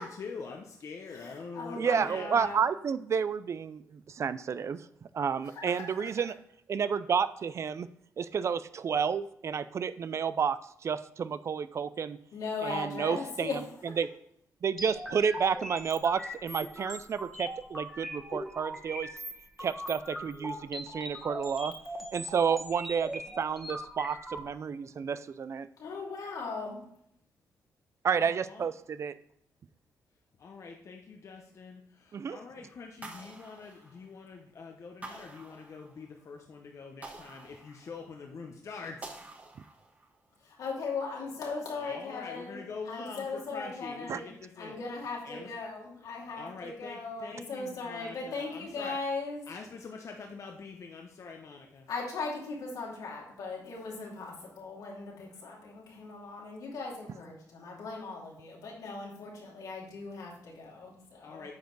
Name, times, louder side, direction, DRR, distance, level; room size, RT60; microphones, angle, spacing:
voice 1, 0.0-2.5 28.2-28.7 30.4-39.1 41.7-44.7 45.2-45.5 46.4-49.0 49.5-51.9 61.2-61.5, left 4 dB, 55° left, 2 dB, 0.9 m, -45 dB
voice 2, 1.1-2.6 5.4-6.1 12.3-13.7 25.8-26.8 40.6-44.3 44.6-49.4 51.9-57.3 57.6-61.4, left 4 dB, 80° left, -3 dB, 2.7 m, -38 dB
voice 3, 1.7-4.8 5.1-6.3 6.7-7.9 8.2-12.2 12.6-13.6 14.0-14.1 14.6-19.1 19.6-21.7 22.1-25.7 28.0-29.1 32.1-32.4 44.1-44.2, right 6 dB, 50° right, 14 dB, 0.4 m, -31 dB
sound 1, 14.8-24.4, equal, ahead, 1.4 m, -41 dB
sound 2, 33.0-34.4 35.0-36.2 37.0-38.3 39.0-40.2, right 2 dB, 25° right, 1.2 m, -48 dB
9.2 x 5.1 x 3.9 m, 0.71 s
cardioid pair, 90°, 6 cm